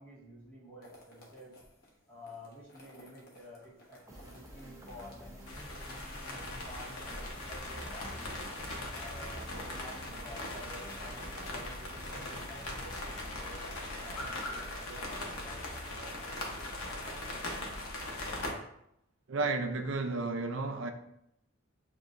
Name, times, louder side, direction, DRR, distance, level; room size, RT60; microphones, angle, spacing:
voice 1, 0.0-1.6 2.1-5.8 6.3-8.5 8.9-13.6 14.0-16.6 17.0-17.7, equal, 10° left, 1.8 m, -51 dB
sound 1, 0.8-17.6, equal, 45° left, 1.0 m, -58 dB
sound 2, 4.1-14.6, equal, 15° right, 0.7 m, -50 dB
sound 3, 5.5-18.5, left 2 dB, 85° left, 1.0 m, -40 dB
voice 2, 19.3-20.9, right 3 dB, 65° right, 0.5 m, -32 dB
7.1 x 2.8 x 2.6 m
head